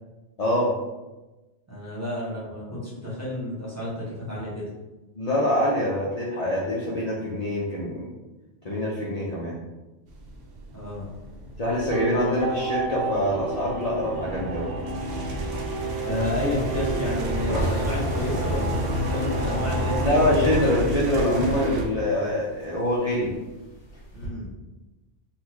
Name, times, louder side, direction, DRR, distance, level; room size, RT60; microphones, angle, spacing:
voice 1, 0.4-0.7 5.2-8.1 8.6-9.6 11.6-14.7 20.0-23.3, left 1 dB, 45° left, -6 dB, 0.6 m, -24 dB
voice 2, 1.7-4.6 10.7-11.1 16.0-18.8 19.1-20.0 20.3-20.6 24.1-24.5, left 1 dB, 15° right, -7 dB, 1.0 m, -31 dB
sound 1, 10.1-21.9, right 1 dB, 80° right, 0.9 m, -32 dB
sound 2, 11.7-20.1, right 3 dB, 45° right, 0.8 m, -33 dB
sound 3, 15.2-22.2 22.5-24.3, left 1 dB, 70° left, 1.7 m, -32 dB
4.0 x 2.2 x 3.0 m, 1.1 s
omnidirectional pair, 1.1 m